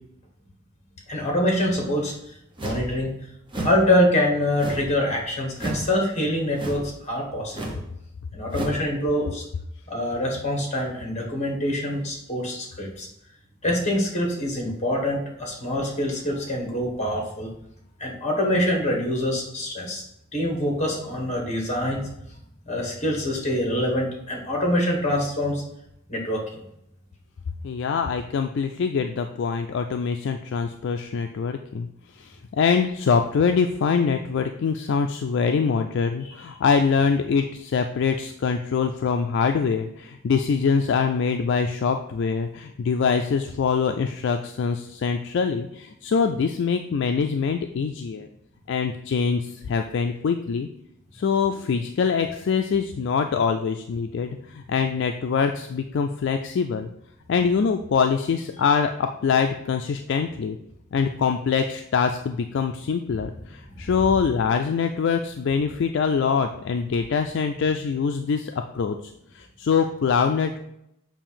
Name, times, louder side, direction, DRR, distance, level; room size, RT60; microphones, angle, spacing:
voice 1, 1.1-2.1 2.6-3.1 3.6-7.8 8.3-9.4 9.9-13.1 13.6-17.5 18.0-20.0 20.3-22.0 22.7-25.6 26.1-26.6, left 1 dB, 35° left, 1 dB, 1.4 m, -25 dB
sound 1, 2.6-2.9 3.5-3.8 4.6-5.0 5.5-5.9 6.5-6.9 7.5-7.8 8.5-8.8, right 1 dB, 25° right, 0.9 m, -31 dB
voice 2, 27.6-31.9 32.1-48.3 48.7-50.7 51.1-56.9 57.3-60.6 60.9-70.6, left 5 dB, 60° left, 5 dB, 0.3 m, -24 dB
7.0 x 2.5 x 5.6 m, 0.78 s
head